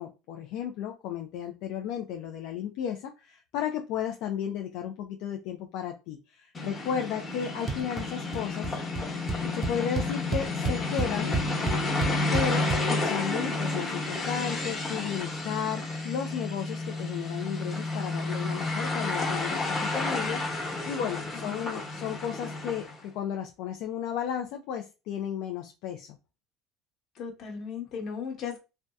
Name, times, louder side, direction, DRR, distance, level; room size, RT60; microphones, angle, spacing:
voice 1, 0.0-8.7 9.5-11.4 12.3-26.2, left 8 dB, 70° left, 0.3 m, -34 dB
sound 1, 6.5-23.0, left 2 dB, 25° left, 1.0 m, -31 dB
sound 2, 7.7-8.0 8.3-8.7 9.0-9.1 9.3-12.8, right 4 dB, 30° right, 0.4 m, -30 dB
voice 2, 21.3-21.7 27.2-28.6, left 6 dB, 50° left, 1.0 m, -37 dB
2.6 x 2.1 x 2.3 m
supercardioid pair, 115°, 0 cm